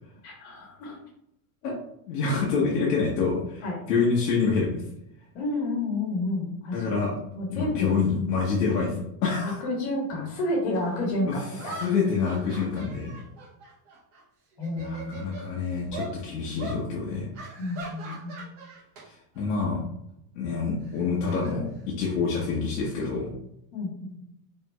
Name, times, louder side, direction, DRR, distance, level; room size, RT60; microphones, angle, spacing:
voice 1, 0.2-1.0 3.6-3.8 5.3-6.8 7.3-7.9 9.6-11.9 14.6-15.4 17.6-18.5 23.7-24.2, left 2 dB, 40° left, -1 dB, 1.4 m, -30 dB
voice 2, 2.1-4.8 6.7-7.1 7.5-9.6 11.3-11.4 11.7-13.1 14.8-17.3 19.0-19.8 20.3-23.3, left 5 dB, 85° left, -4 dB, 1.2 m, -27 dB
sound 1, 10.7-10.8 11.5-14.2 14.5-15.5 15.9-16.2 16.6-16.8 17.3-19.1 19.4-19.6 20.8-22.3, right 2 dB, 20° right, 0.5 m, -41 dB
4.6 x 3.7 x 2.3 m, 0.78 s
supercardioid pair, 180°, 47 cm